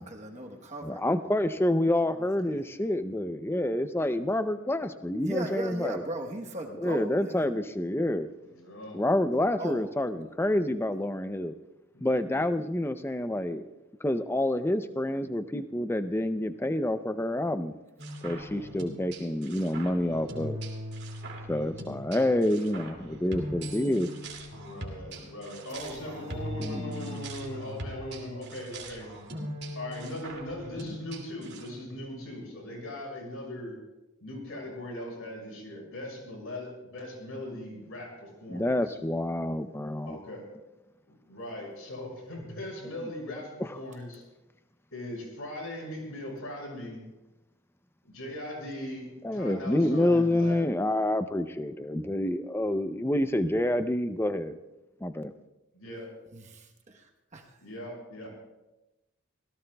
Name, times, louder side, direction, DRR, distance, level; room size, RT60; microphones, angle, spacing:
voice 1, 0.0-1.0 5.2-7.5 9.6-9.9 25.7-26.2 56.3-57.0 57.3-57.4, right 1 dB, 35° right, 1 dB, 1.1 m, -37 dB
voice 2, 0.8-6.0 6.7-8.3 8.9-11.5 12.0-13.6 14.0-17.7 18.2-20.6 21.5-24.1 26.6-27.2 38.5-40.2 49.2-54.6 55.0-55.3, left 1 dB, 10° left, 10 dB, 0.5 m, -28 dB
voice 3, 8.4-9.0 11.9-12.5 24.5-29.1 29.7-33.8 34.2-39.0 40.0-40.5 41.1-44.2 44.9-47.0 48.0-50.6 55.7-56.1 57.6-58.3, left 1 dB, 80° left, -1 dB, 6.1 m, -40 dB
sound 1, 18.0-31.7, equal, 55° right, 2.4 m, -40 dB
25.5 x 17.0 x 2.3 m, 1.0 s
head